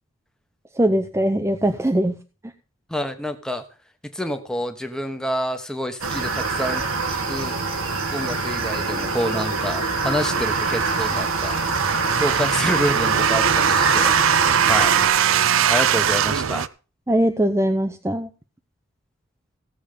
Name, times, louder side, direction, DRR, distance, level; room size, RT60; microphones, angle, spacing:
voice 1, 0.8-2.1 17.1-18.3, right 1 dB, 15° right, 7 dB, 0.6 m, -21 dB
voice 2, 2.9-3.6 4.1-7.6 8.1-11.5 12.2-14.1 14.6-15.0 15.7-16.6, equal, 5° left, 6 dB, 1.1 m, -28 dB
sound 1, 6.0-15.1, right 4 dB, 90° right, 1.6 m, -24 dB
sound 2, 10.2-16.7, right 8 dB, 70° right, 0.5 m, -21 dB
16.5 x 7.2 x 5.1 m, 0.35 s
head